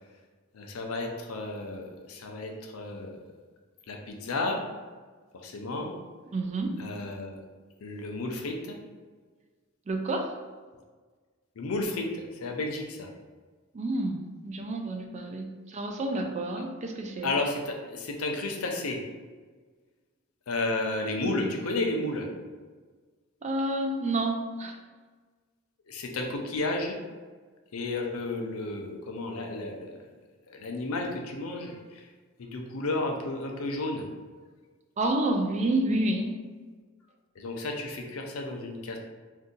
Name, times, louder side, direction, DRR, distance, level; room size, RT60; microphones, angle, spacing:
voice 1, 0.5-3.2 3.9-4.6 5.4-5.9 6.8-7.4 7.8-8.8 11.6-13.1 17.2-19.0 20.5-22.3 25.9-27.0 27.7-30.0 30.5-32.0 32.4-34.1 37.4-39.0, left 2 dB, 85° left, 2 dB, 0.5 m, -32 dB
voice 2, 6.3-6.8 9.9-10.3 13.7-17.3 21.2-21.4 23.4-24.8 35.0-36.3, right 2 dB, 35° right, 4 dB, 0.3 m, -29 dB
2.7 x 2.5 x 3.7 m, 1.4 s
head